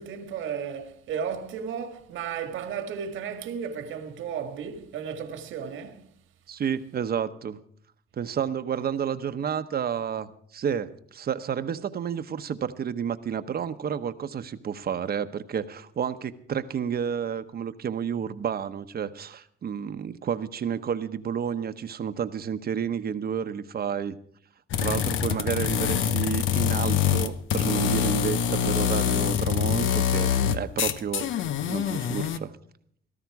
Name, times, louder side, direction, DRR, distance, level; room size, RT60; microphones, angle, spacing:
voice 1, 0.0-6.1 25.2-25.6, right 7 dB, 80° right, 1.8 m, -34 dB
voice 2, 6.5-7.6 8.2-24.2 24.8-31.3 31.7-32.5, right 8 dB, 50° right, 1.0 m, -30 dB
sound 1, 24.7-32.4, left 9 dB, 80° left, 0.9 m, -25 dB
17.5 x 13.5 x 4.8 m
cardioid pair, 90°, 20 cm